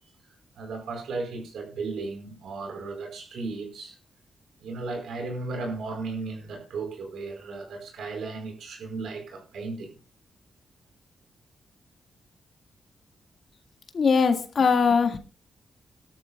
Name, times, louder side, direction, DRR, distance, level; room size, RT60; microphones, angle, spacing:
voice 1, 0.5-4.0 4.6-9.9, right 3 dB, 85° right, 4.6 m, -35 dB
voice 2, 13.9-15.2, left 5 dB, 60° left, 1.9 m, -21 dB
19.0 x 12.5 x 2.3 m
cardioid pair, 65°, 0 cm